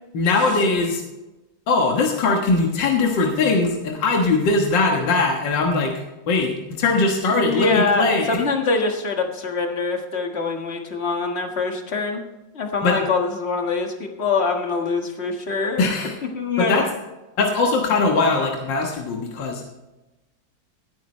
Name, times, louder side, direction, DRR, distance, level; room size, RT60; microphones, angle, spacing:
voice 1, 0.1-1.0 1.7-5.9 6.3-8.4 12.8-13.0 15.8-16.2 16.6-16.9 17.4-19.7, left 3 dB, 70° left, 1 dB, 2.1 m, -20 dB
voice 2, 7.3-12.2 12.5-15.9 16.3-16.9, left 4 dB, 35° left, 3 dB, 1.8 m, -24 dB
18.0 x 9.4 x 3.2 m, 1.1 s
omnidirectional pair, 2.0 m